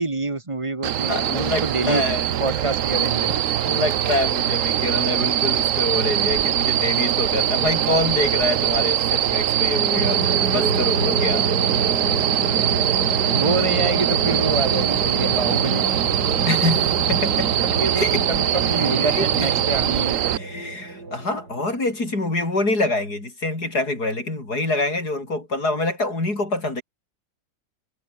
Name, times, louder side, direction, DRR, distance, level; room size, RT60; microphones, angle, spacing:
voice 1, 0.0-2.0 2.4-3.4 13.3-15.8 17.6-20.3, right 3 dB, 20° right, 1.7 m, -26 dB
sound 1, 0.8-20.4, right 11 dB, 60° right, 1.0 m, -22 dB
voice 2, 1.1-2.3 3.6-10.3 10.5-11.5 16.5-17.6 17.9-18.3 18.7-19.5 20.3-26.8, left 2 dB, 75° left, 7.2 m, -26 dB
sound 2, 10.0-22.0, right 3 dB, 85° right, 5.1 m, -28 dB
omnidirectional pair, 1.7 m